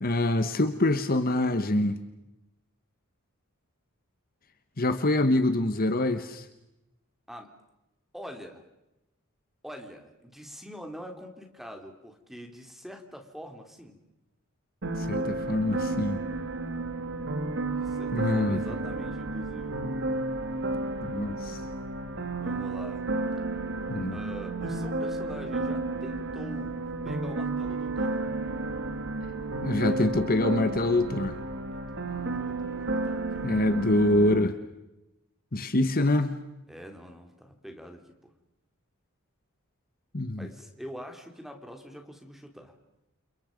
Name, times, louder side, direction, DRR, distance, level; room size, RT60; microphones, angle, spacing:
voice 1, 0.0-2.0 4.8-6.4 15.0-16.2 18.1-18.6 21.0-21.6 23.9-24.2 29.6-31.4 33.4-34.6 35.5-36.3 40.1-40.5, left 1 dB, 40° left, 9 dB, 1.3 m, -25 dB
voice 2, 8.1-8.6 9.6-14.0 17.7-19.8 22.4-23.0 24.1-28.2 31.7-33.5 36.7-38.3 40.3-42.7, equal, ahead, 4 dB, 3.1 m, -44 dB
sound 1, 14.8-34.4, right 2 dB, 55° right, 1.7 m, -32 dB
29.5 x 28.5 x 5.3 m, 0.92 s
head